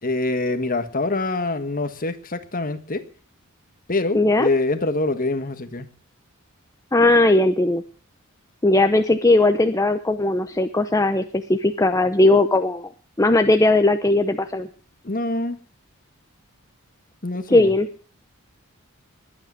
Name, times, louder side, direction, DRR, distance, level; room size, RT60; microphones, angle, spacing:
voice 1, 0.0-3.0 3.9-5.9 15.0-15.6 17.2-17.7, left 2 dB, 40° left, 9 dB, 1.5 m, -25 dB
voice 2, 4.1-4.5 6.9-7.8 8.6-12.9 13.2-14.7 17.5-17.9, left 2 dB, 15° left, 8 dB, 0.7 m, -18 dB
21.0 x 8.5 x 6.4 m, 0.41 s
head